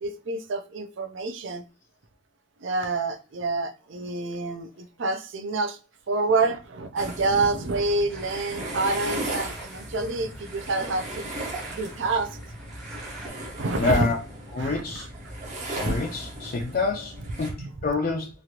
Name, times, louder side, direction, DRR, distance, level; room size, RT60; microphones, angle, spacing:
voice 1, 0.0-1.6 2.6-5.8 6.1-11.3 11.7-12.3 13.6-14.1 14.6-15.0 15.8-15.9 17.6-17.7, right 3 dB, 60° right, 0.5 m, -27 dB
sound 1, 7.0-17.5, right 1 dB, 35° right, 0.8 m, -37 dB
sound 2, 8.1-13.3, right 1 dB, ahead, 0.7 m, -47 dB
voice 2, 13.7-14.2 14.5-15.1 15.7-18.3, left 3 dB, 45° left, 0.4 m, -27 dB
3.2 x 2.4 x 2.8 m
head